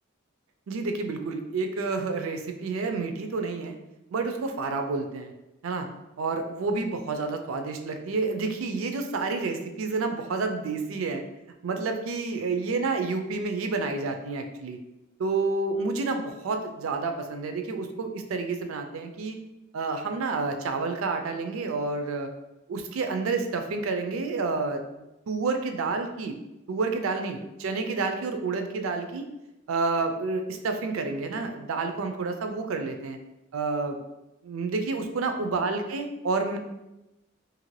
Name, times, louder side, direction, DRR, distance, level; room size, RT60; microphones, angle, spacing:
voice 1, 0.7-3.8 4.1-5.3 5.6-5.9 6.2-11.2 11.6-14.8 15.2-19.4 19.7-22.3 22.7-24.8 25.3-26.3 26.7-29.2 29.7-33.2 33.5-34.0 34.4-36.6, right 3 dB, 75° right, 5 dB, 0.4 m, -29 dB
2.8 x 2.5 x 3.1 m, 0.95 s
head